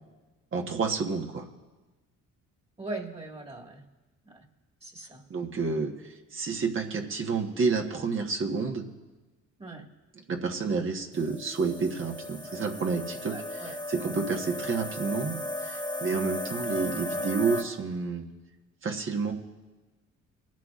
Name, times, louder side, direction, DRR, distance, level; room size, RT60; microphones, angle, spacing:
voice 1, 0.5-1.5 5.3-8.9 10.2-18.2 18.8-19.3, right 4 dB, 40° right, 2 dB, 1.3 m, -30 dB
voice 2, 2.8-3.8 4.2-4.4 4.8-5.2 9.6-9.8 13.3-13.7, right 2 dB, 20° right, 0 dB, 1.8 m, -40 dB
sound 1, 11.1-17.6, left 1 dB, 15° left, 1.3 m, -36 dB
22.5 x 10.5 x 2.5 m, 1.2 s
cardioid pair, 90°, 30 cm